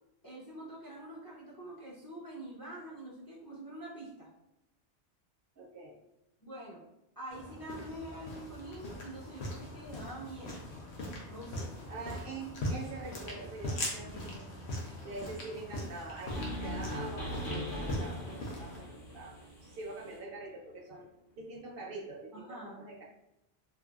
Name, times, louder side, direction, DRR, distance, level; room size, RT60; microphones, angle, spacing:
voice 1, 0.2-4.3 6.4-6.8 7.2-10.6 11.3-11.7 22.3-22.7, right 1 dB, 30° left, -6 dB, 0.5 m, -45 dB
voice 2, 5.6-6.0 11.9-14.6 15.0-21.1 21.4-23.0, right 3 dB, 65° right, -1 dB, 0.7 m, -45 dB
sound 1, 7.3-18.8, left 1 dB, 80° left, 1.0 m, -41 dB
sound 2, 16.3-20.2, equal, 55° left, 1.0 m, -40 dB
3.3 x 2.2 x 2.3 m, 0.88 s
omnidirectional pair, 1.1 m